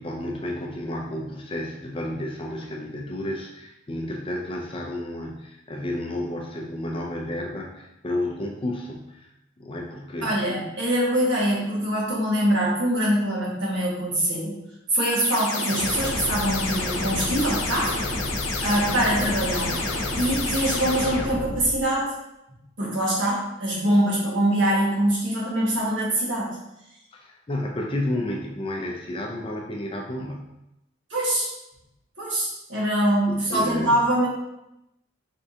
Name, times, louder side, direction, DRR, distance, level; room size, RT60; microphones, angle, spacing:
voice 1, 0.0-9.3 9.6-10.4 27.1-30.4 33.3-34.0, left 1 dB, 25° left, 0 dB, 0.4 m, -31 dB
voice 2, 10.2-14.6 14.9-17.9 18.6-19.8 20.2-22.1 22.8-26.5 31.1-31.5 32.2-34.3, right 1 dB, 65° right, -5 dB, 1.5 m, -23 dB
sound 1, 15.0-21.8, left 2 dB, 80° left, 0.8 m, -28 dB
4.4 x 3.5 x 2.7 m, 0.89 s
head